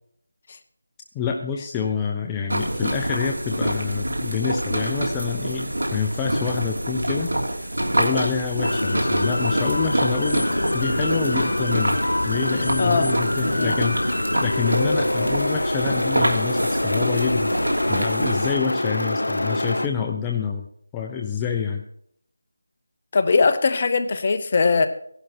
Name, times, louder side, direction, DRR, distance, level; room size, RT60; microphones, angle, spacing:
voice 1, 1.1-7.3 8.0-10.4 10.7-12.0 12.2-17.5 17.9-20.7 20.9-21.8, left 7 dB, 10° left, 1 dB, 0.7 m, -27 dB
sound 1, 2.5-18.5, right 1 dB, 85° right, 3.1 m, -26 dB
sound 2, 8.6-19.9, left 1 dB, 85° left, 0.7 m, -25 dB
voice 2, 12.8-13.1 13.4-13.8 23.1-24.9, left 4 dB, 35° left, 9 dB, 1.1 m, -20 dB
16.0 x 11.5 x 4.4 m, 0.67 s
figure-of-eight pair, 170°, 0 cm